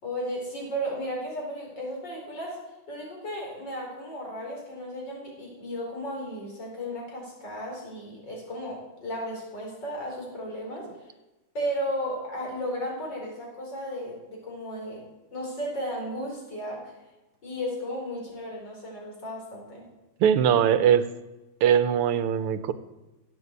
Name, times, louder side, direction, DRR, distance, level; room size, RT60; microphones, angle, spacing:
voice 1, 0.0-2.6 2.9-10.9 11.5-15.0 15.3-16.8 17.4-19.8, equal, 50° left, -1 dB, 5.2 m, -34 dB
voice 2, 20.2-21.0 21.6-22.7, right 9 dB, 85° right, 13 dB, 1.8 m, -21 dB
17.0 x 8.6 x 8.2 m, 1.1 s
omnidirectional pair, 2.4 m